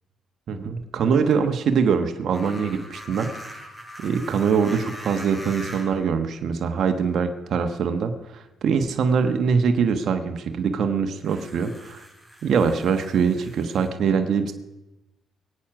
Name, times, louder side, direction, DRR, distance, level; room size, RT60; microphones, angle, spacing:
voice 1, 0.5-3.3 4.0-12.0 12.4-14.5, right 6 dB, 65° right, 6 dB, 1.3 m, -23 dB
sound 1, 2.3-6.0 7.1-7.2 11.2-13.9, equal, ahead, 6.6 m, -41 dB
22.0 x 9.0 x 6.1 m, 0.99 s
cardioid pair, 85°, 0 cm